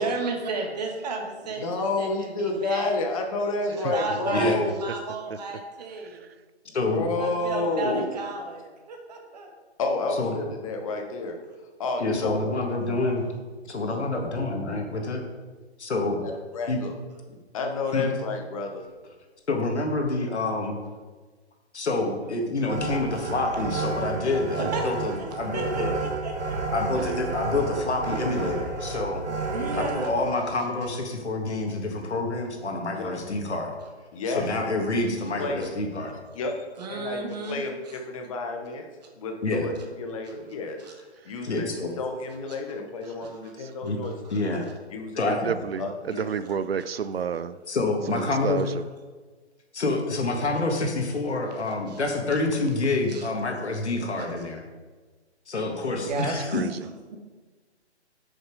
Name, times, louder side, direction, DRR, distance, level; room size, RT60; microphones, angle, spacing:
voice 1, 0.0-3.0 3.9-6.2 7.2-8.6 8.9-9.5 24.6-24.9 25.3-26.6 29.3-30.1 36.8-37.6 40.8-40.9 43.2-43.5 44.0-44.7 51.5-51.6 51.9-52.0 53.1-53.3 56.0-57.2, right 3 dB, 35° right, 2 dB, 1.6 m, -34 dB
voice 2, 1.6-4.8 6.6-8.0 9.8-11.4 11.8-12.7 13.8-14.0 16.2-16.9 17.5-18.8 29.7-29.8 33.0-33.1 34.1-34.5 35.4-35.7 36.3-37.2 37.5-38.9 39.2-44.4 44.9-45.4 45.8-46.3, left 3 dB, 30° left, 3 dB, 1.2 m, -30 dB
voice 3, 4.3-4.6 6.7-7.0 10.2-10.3 12.0-13.2 13.7-15.2 15.8-16.2 16.7-16.8 17.9-18.1 19.5-20.8 21.7-26.0 26.7-29.2 29.8-33.7 34.3-36.1 39.4-39.7 41.4-41.9 43.8-44.0 44.3-44.7 45.2-45.6 47.7-48.6 49.7-54.6 55.5-56.7, left 2 dB, 75° left, 2 dB, 2.1 m, -27 dB
sound 1, 22.7-30.1, right 3 dB, 80° right, 1.8 m, -31 dB
voice 4, 45.3-47.6 48.1-48.9 56.5-56.8, right 7 dB, 60° right, 14 dB, 0.5 m, -30 dB
8.8 x 6.3 x 4.9 m, 1.3 s
hypercardioid pair, 150°, 34 cm